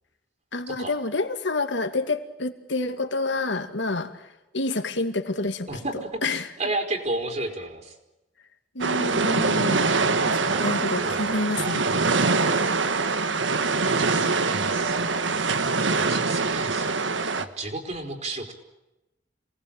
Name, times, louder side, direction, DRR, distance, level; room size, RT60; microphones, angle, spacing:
voice 1, 0.5-4.3 4.5-5.7 6.2-6.5 8.7-9.8 10.3-11.8, left 2 dB, 65° left, 8 dB, 2.3 m, -28 dB
voice 2, 5.7-6.2 6.6-7.9 10.4-10.6 11.0-11.3 11.6-12.4 13.9-15.0 16.0-17.0 17.4-18.5, right 2 dB, 40° right, 4 dB, 4.4 m, -33 dB
sound 1, 8.8-17.4, right 4 dB, 75° right, 1.5 m, -24 dB
27.5 x 19.5 x 9.0 m, 0.97 s
head